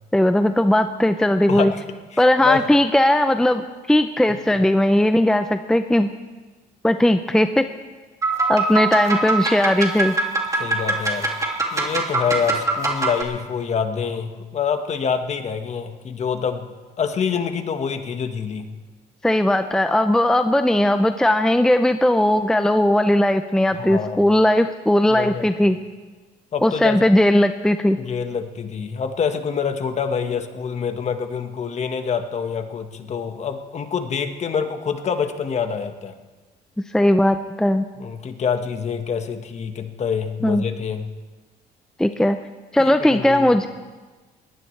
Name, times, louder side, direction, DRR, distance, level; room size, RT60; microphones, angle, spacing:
voice 1, 0.1-1.7 2.2-6.1 6.8-7.6 8.5-10.2 19.2-25.8 26.6-28.0 36.8-37.9 40.4-40.6 42.0-42.4 42.7-43.7, left 1 dB, 5° left, 8 dB, 0.6 m, -18 dB
voice 2, 1.5-1.8 2.1-2.7 4.3-4.4 10.5-11.3 11.7-18.6 23.7-24.3 25.1-25.5 26.5-27.1 28.0-36.2 38.0-41.1 42.8-43.6, left 6 dB, 40° left, 6 dB, 1.5 m, -26 dB
sound 1, 8.2-13.2, right 3 dB, 20° right, 2.5 m, -23 dB
21.5 x 18.5 x 3.3 m, 1.3 s
cardioid pair, 110°, 17 cm